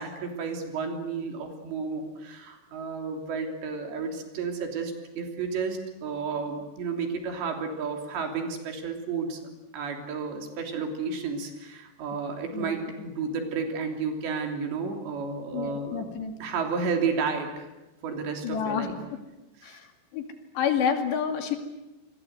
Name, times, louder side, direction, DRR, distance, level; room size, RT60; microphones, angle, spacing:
voice 1, 0.0-9.4 9.7-17.7 18.0-19.0 19.6-19.8, right 5 dB, 70° right, 4 dB, 5.4 m, -32 dB
voice 2, 15.5-16.3 18.4-19.2 19.6-20.3 20.6-21.6, left 7 dB, 70° left, 6 dB, 4.4 m, -29 dB
28.5 x 22.5 x 8.0 m, 1.0 s
omnidirectional pair, 5.4 m